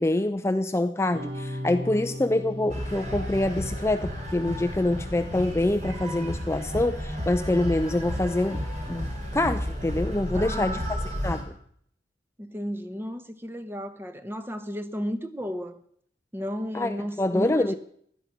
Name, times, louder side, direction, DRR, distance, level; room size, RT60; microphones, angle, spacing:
voice 1, 0.0-8.6 8.9-11.4 16.7-17.7, left 1 dB, 15° left, 0.5 m, -26 dB
sound 1, 1.1-5.9, left 1 dB, 65° right, 1.7 m, -38 dB
sound 2, 2.7-11.4, equal, 40° right, 4.1 m, -32 dB
voice 2, 10.3-10.8 12.4-15.8 16.3-17.7, equal, 15° right, 1.1 m, -33 dB
16.0 x 12.0 x 5.9 m
head